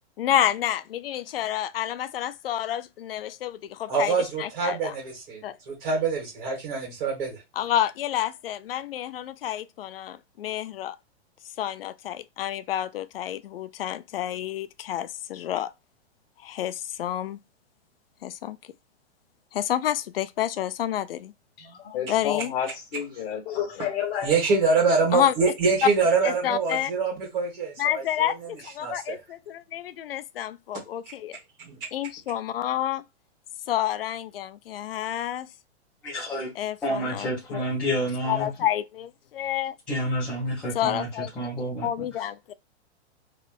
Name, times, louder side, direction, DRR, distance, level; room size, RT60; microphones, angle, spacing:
voice 1, 0.2-4.1 4.4-4.9 5.4-5.6 7.6-11.0 11.6-15.7 16.4-17.4 18.2-18.6 19.5-21.3 22.1-22.5 25.1-25.3 25.8-25.9 26.2-26.9 27.8-31.4 31.9-33.0 33.7-35.5 36.6-37.6 38.3-39.7 40.7-41.5 41.8-42.5, left 11 dB, 60° left, 0.5 m, -29 dB
voice 2, 3.9-7.4 24.2-28.3 28.8-29.2 31.6-31.8, right 4 dB, 45° right, 1.8 m, -25 dB
voice 3, 21.6-24.3, left 9 dB, 35° left, 1.6 m, -30 dB
voice 4, 36.0-36.5 36.8-38.5 39.9-41.1 41.4-41.9, equal, 5° left, 0.4 m, -29 dB
4.5 x 3.2 x 2.4 m
hypercardioid pair, 165°, 34 cm